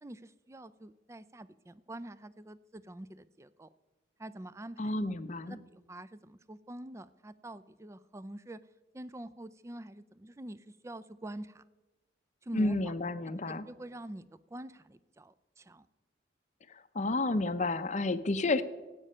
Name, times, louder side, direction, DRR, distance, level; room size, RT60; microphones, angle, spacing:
voice 1, 0.0-3.7 4.2-4.9 5.5-8.6 8.9-11.6 12.4-12.9 13.5-15.9, right 1 dB, 15° right, 16 dB, 0.4 m, -46 dB
voice 2, 4.8-5.6 12.5-13.7 16.7-18.6, left 2 dB, 40° left, 11 dB, 0.6 m, -31 dB
17.0 x 8.8 x 5.5 m, 1.2 s
head